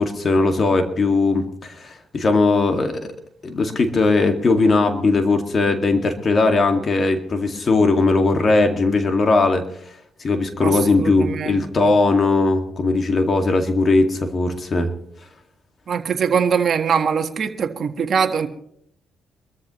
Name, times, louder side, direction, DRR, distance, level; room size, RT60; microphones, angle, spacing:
voice 1, 0.0-3.0 3.4-9.6 10.2-14.9, left 3 dB, 40° left, 5 dB, 2.1 m, -19 dB
voice 2, 10.6-11.6 15.9-18.5, right 6 dB, 50° right, 4 dB, 1.5 m, -22 dB
24.0 x 14.0 x 3.1 m, 0.68 s
cardioid pair, 90°, 0 cm